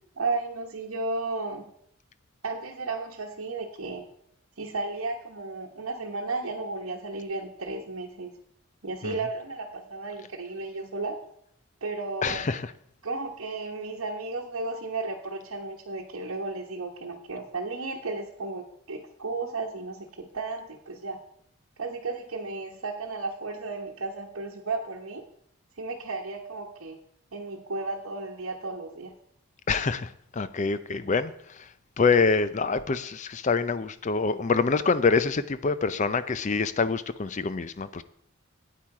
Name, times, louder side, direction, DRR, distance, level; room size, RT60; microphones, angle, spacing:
voice 1, 0.2-1.7 2.4-4.0 4.6-8.3 8.8-11.2 11.8-12.4 13.0-21.2 21.8-25.2 25.8-27.0 27.3-29.1, right 3 dB, 70° right, -3 dB, 1.1 m, -34 dB
voice 2, 12.2-12.7 29.7-38.0, left 4 dB, 35° left, 14 dB, 0.5 m, -26 dB
9.2 x 8.7 x 4.8 m, 0.71 s
head